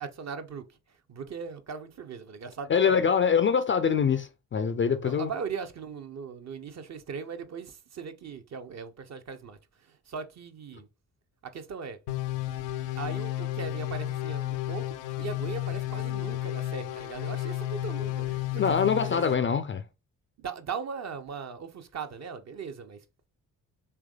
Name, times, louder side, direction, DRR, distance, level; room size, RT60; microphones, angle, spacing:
voice 1, 0.0-3.1 5.0-10.9 11.4-12.0 12.9-19.2 20.4-23.0, right 6 dB, 35° right, 0.6 m, -39 dB
voice 2, 2.7-5.3 18.6-19.8, left 6 dB, 30° left, 0.4 m, -24 dB
sound 1, 12.1-19.3, left 15 dB, 70° left, 0.6 m, -32 dB
3.4 x 3.1 x 2.3 m
hypercardioid pair, 40°, 45 cm